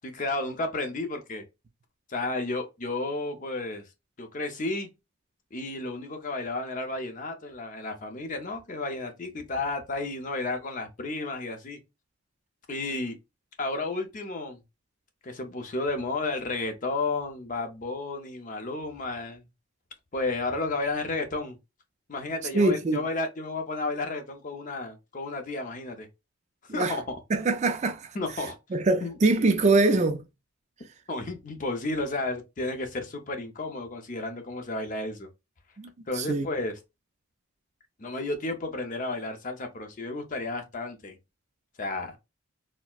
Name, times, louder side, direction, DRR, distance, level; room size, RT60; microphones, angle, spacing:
voice 1, 0.0-1.4 2.1-3.8 4.2-4.9 5.5-11.8 12.7-13.2 13.6-14.6 15.2-19.4 20.1-21.6 22.1-26.1 26.6-27.2 28.1-28.6 29.0-29.2 31.1-35.3 36.1-36.8 38.0-41.2 41.8-42.2, left 2 dB, 35° left, 0.5 m, -32 dB
voice 2, 22.5-23.0 26.7-27.0 27.3-28.1 28.7-30.2 35.8-35.9 36.2-36.5, right 3 dB, 30° right, 0.3 m, -23 dB
4.2 x 2.0 x 2.3 m
head